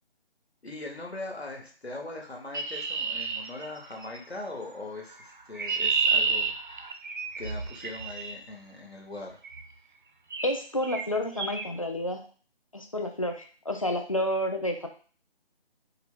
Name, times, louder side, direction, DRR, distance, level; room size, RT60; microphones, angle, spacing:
voice 1, 0.6-6.5 7.4-9.4, left 2 dB, 90° left, 0 dB, 1.2 m, -40 dB
Chirp tweet, 2.5-4.2 5.2-8.3 9.4-9.7 10.3-10.6 10.8-11.1 11.4-11.7, right 5 dB, 50° right, 0.5 m, -30 dB
voice 2, 10.4-12.2 12.7-14.9, left 1 dB, 35° left, 4 dB, 0.4 m, -30 dB
4.4 x 2.2 x 3.6 m, 0.40 s
figure-of-eight pair, 155°, 31 cm